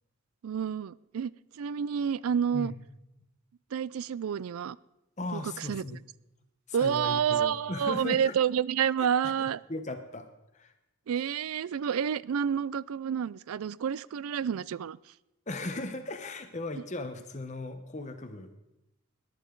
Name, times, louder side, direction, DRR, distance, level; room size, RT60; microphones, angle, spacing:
voice 1, 0.4-2.7 3.7-4.8 5.3-5.8 6.7-9.6 11.1-15.0, right 8 dB, 80° right, 21 dB, 0.4 m, -29 dB
voice 2, 5.2-6.0 6.7-8.3 9.0-9.1 9.4-10.3 10.5-10.7 15.5-18.5, left 2 dB, 35° left, 7 dB, 0.8 m, -37 dB
18.5 x 10.5 x 3.8 m, 0.92 s
head